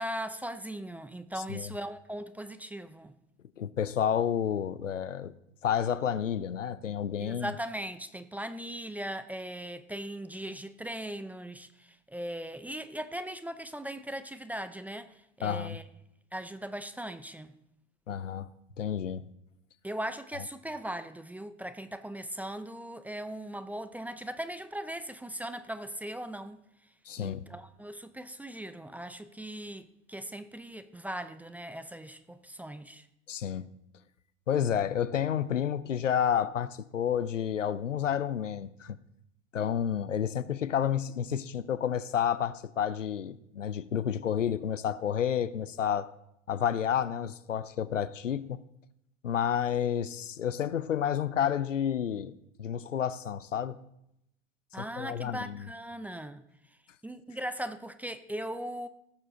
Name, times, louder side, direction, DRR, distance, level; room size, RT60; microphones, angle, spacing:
voice 1, 0.0-3.1 7.2-15.8 16.3-17.5 19.8-26.6 27.2-33.1 54.7-56.5 57.0-58.9, right 1 dB, 5° right, 0.4 m, -39 dB
voice 2, 3.6-5.3 5.6-7.5 15.4-15.8 18.1-18.5 18.8-19.3 27.1-27.4 33.3-33.7 34.5-39.0 39.5-46.1 46.5-48.6 49.2-52.3 52.6-53.8 54.8-55.7, left 9 dB, 90° left, 0.6 m, -30 dB
17.5 x 7.1 x 3.8 m
hypercardioid pair, 95°, 36 cm